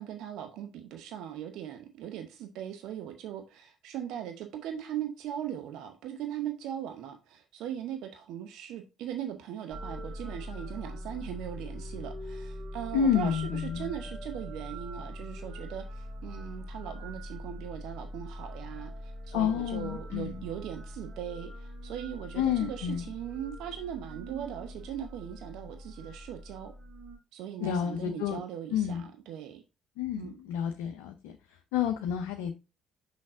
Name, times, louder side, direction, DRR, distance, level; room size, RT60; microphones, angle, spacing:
voice 1, 0.0-26.7 27.3-29.6 30.1-30.4, right 10 dB, 65° right, 0.8 m, -39 dB
sound 1, 9.7-27.2, equal, 50° right, 3.5 m, -42 dB
voice 2, 12.9-13.9 19.3-20.4 22.4-23.1 27.6-28.4 28.7-29.1 30.0-31.4 31.7-32.5, left 8 dB, 70° left, 0.6 m, -29 dB
6.2 x 5.7 x 3.7 m
figure-of-eight pair, 50°, 0 cm